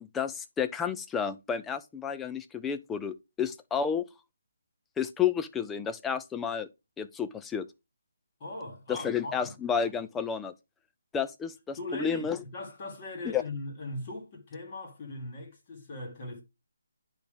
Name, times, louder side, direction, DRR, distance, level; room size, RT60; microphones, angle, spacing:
voice 1, 0.0-4.0 5.0-6.7 7.0-7.6 8.9-10.5 11.1-12.4 13.2-13.4, left 7 dB, 5° left, 0.4 m, -31 dB
voice 2, 8.4-9.6 11.8-16.4, left 2 dB, 25° left, 1.8 m, -39 dB
10.0 x 3.5 x 3.4 m
hypercardioid pair, 170°, 0 cm